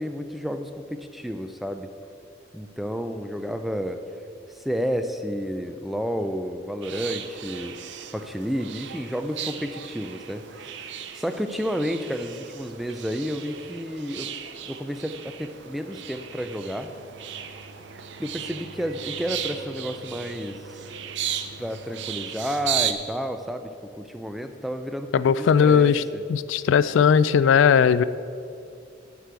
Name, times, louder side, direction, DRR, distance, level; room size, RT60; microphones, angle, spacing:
voice 1, 0.0-1.9 2.5-4.0 4.5-7.8 8.1-14.4 14.7-16.9 18.2-20.8 21.6-26.2, equal, ahead, 7 dB, 0.4 m, -31 dB
sound 1, 6.8-22.9, right 9 dB, 65° right, 0.6 m, -36 dB
sound 2, 15.4-23.1, left 1 dB, 40° right, 0.9 m, -49 dB
voice 2, 25.1-26.0 26.3-28.0, left 7 dB, 75° left, 16 dB, 0.3 m, -18 dB
8.1 x 6.0 x 8.0 m, 2.5 s
head